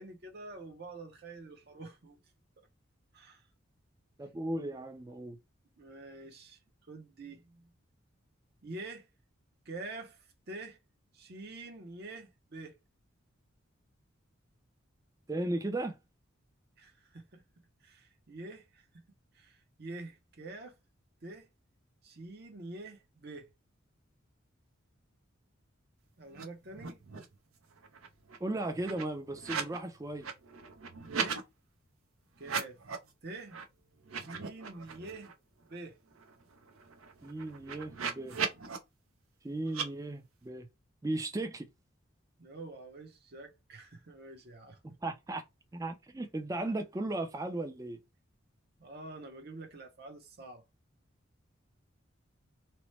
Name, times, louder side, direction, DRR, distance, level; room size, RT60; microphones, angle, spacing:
voice 1, 0.0-2.2 3.1-3.4 5.8-6.6 6.9-7.7 8.6-9.1 9.7-10.8 11.1-12.7 16.8-17.4 17.8-18.9 19.3-20.8 21.2-21.5 22.0-23.5 26.2-27.0 31.1-31.4 32.4-32.8 33.2-33.6 34.1-35.3 35.7-36.0 42.4-44.8 48.8-50.6, right 2 dB, 50° right, 0.6 m, -46 dB
voice 2, 4.2-5.4 15.3-16.0 28.4-30.3 37.2-38.4 39.4-40.7 41.0-41.7 44.8-45.4 45.7-48.0, right 2 dB, 15° right, 0.3 m, -36 dB
sound 1, 26.3-26.4 26.7-27.4 27.7-29.8 30.1-31.4 32.4-33.1 33.5-33.6 34.0-35.3 35.7-35.8 36.1-38.8 39.7-39.9, right 6 dB, 85° right, 0.7 m, -38 dB
2.9 x 2.1 x 3.0 m
head